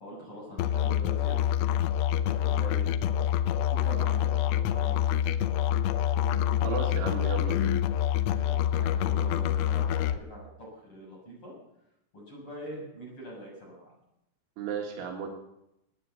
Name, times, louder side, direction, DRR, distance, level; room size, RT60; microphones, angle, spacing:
voice 1, 0.0-1.4 2.2-2.9 3.6-5.2 8.4-11.5 12.1-13.9, equal, 25° left, -3 dB, 6.8 m, -43 dB
Musical instrument, 0.6-10.2, left 10 dB, 85° left, 3.2 m, -26 dB
voice 2, 6.6-7.8 14.6-15.3, right 6 dB, 75° right, 0 dB, 4.2 m, -34 dB
18.0 x 9.4 x 7.1 m, 0.84 s
omnidirectional pair, 5.5 m